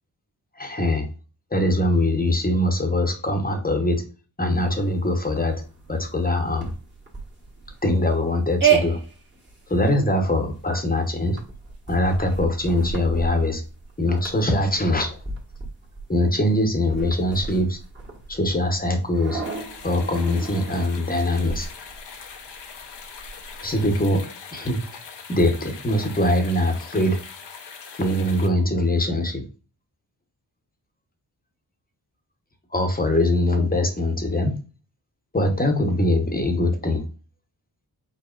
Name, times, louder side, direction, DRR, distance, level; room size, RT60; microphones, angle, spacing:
voice 1, 0.6-1.1 1.5-4.0 4.4-5.6 5.9-6.7 7.8-9.0 9.7-11.4 11.9-13.6 14.0-15.2 16.1-17.8 18.3-19.4 19.8-21.7 23.6-24.2 24.5-24.8 25.3-27.2 28.0-29.4 32.7-34.5 35.3-37.0, left 1 dB, 20° left, 5 dB, 1.0 m, -22 dB
sound 1, 4.5-24.0, right 7 dB, 25° right, 1.5 m, -32 dB
sound 2, 19.4-28.5, left 6 dB, 80° left, 1.0 m, -41 dB
5.1 x 4.0 x 2.5 m, 0.35 s
wide cardioid pair, 95°, 41 cm